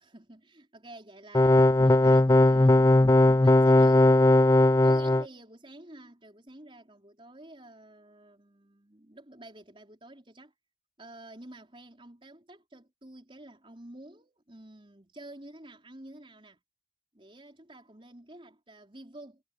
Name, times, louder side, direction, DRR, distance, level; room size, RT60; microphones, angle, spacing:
voice 1, 0.0-4.6 4.8-10.5 11.0-16.6 17.1-19.4, right 1 dB, 30° right, 4.9 m, -50 dB
sound 1, 1.3-5.2, left 1 dB, 20° left, 0.4 m, -19 dB
head